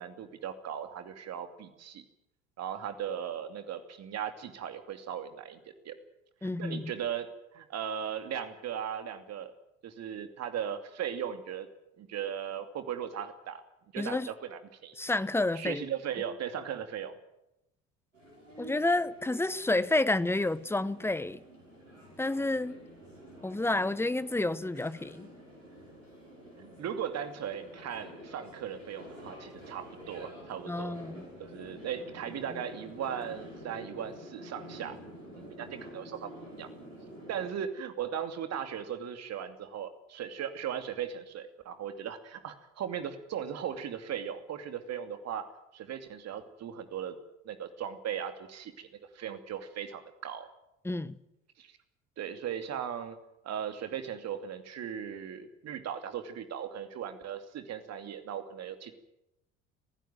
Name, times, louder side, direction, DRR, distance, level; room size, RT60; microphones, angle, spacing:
voice 1, 0.0-2.0 2.6-5.6 5.8-6.0 6.4-7.3 7.5-9.5 9.8-11.7 12.0-13.6 13.9-15.0 15.5-17.1 26.6-31.0 31.4-35.0 35.3-36.7 37.3-45.5 45.7-47.1 47.4-50.5 51.6-51.7 52.2-53.2 53.4-58.9, right 9 dB, 45° right, 2.7 m, -38 dB
voice 2, 6.4-6.9 14.0-14.3 15.0-15.8 18.6-21.4 22.2-22.8 23.4-25.3 30.7-31.2 50.8-51.2, left 2 dB, 5° left, 1.0 m, -30 dB
sound 1, 18.1-37.5, equal, 90° right, 6.0 m, -48 dB
23.5 x 15.5 x 9.2 m
figure-of-eight pair, 60°, 37 cm